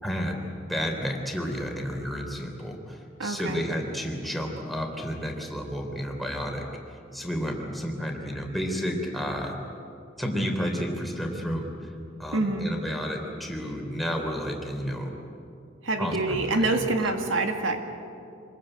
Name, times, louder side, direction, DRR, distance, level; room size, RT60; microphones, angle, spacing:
voice 1, 0.0-6.7 7.1-9.6 10.2-11.7 12.2-15.1 16.0-16.8, equal, ahead, 1 dB, 3.3 m, -31 dB
voice 2, 3.2-3.6 12.3-12.7 15.8-17.8, right 2 dB, 75° right, 5 dB, 2.1 m, -26 dB
26.5 x 21.0 x 9.0 m, 2.6 s
head